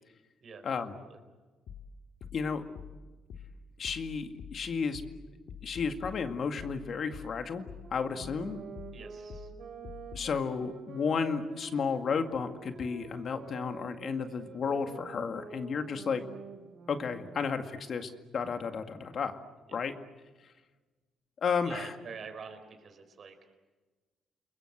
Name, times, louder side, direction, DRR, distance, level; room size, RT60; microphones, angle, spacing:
voice 1, 0.4-1.2 8.9-9.5 19.7-19.8 21.6-23.3, right 5 dB, 55° right, 7 dB, 4.4 m, -47 dB
sound 1, 1.7-10.4, left 5 dB, 70° left, 2.2 m, -47 dB
voice 2, 2.3-2.6 3.8-5.0 5.6-8.6 10.1-16.2 16.9-19.4 19.7-19.9 21.4-21.9, left 5 dB, 55° left, 6 dB, 2.1 m, -33 dB
sound 2, 7.8-17.8, right 5 dB, 70° right, 4.8 m, -48 dB
29.5 x 22.0 x 7.9 m, 1.3 s
cardioid pair, 90°, 0 cm